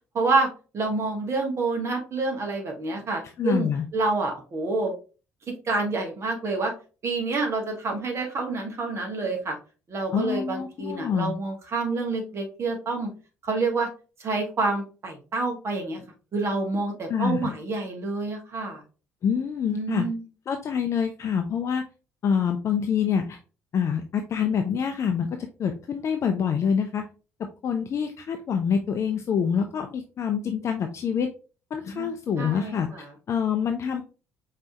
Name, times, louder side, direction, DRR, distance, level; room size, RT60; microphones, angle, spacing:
voice 1, 0.1-0.5 0.7-3.7 3.9-4.9 5.6-6.7 7.0-9.5 9.9-13.1 13.4-13.9 14.2-16.0 16.3-18.8 19.7-20.2 31.9-33.1, right 3 dB, 40° right, 2 dB, 1.7 m, -28 dB
voice 2, 3.4-3.8 10.1-11.3 17.1-17.5 19.2-20.1 20.5-21.8 22.2-23.4 23.7-27.1 27.6-31.3 31.7-34.0, left 7 dB, 45° left, 6 dB, 0.5 m, -26 dB
5.2 x 3.2 x 2.9 m, 0.34 s
figure-of-eight pair, 45°, 7 cm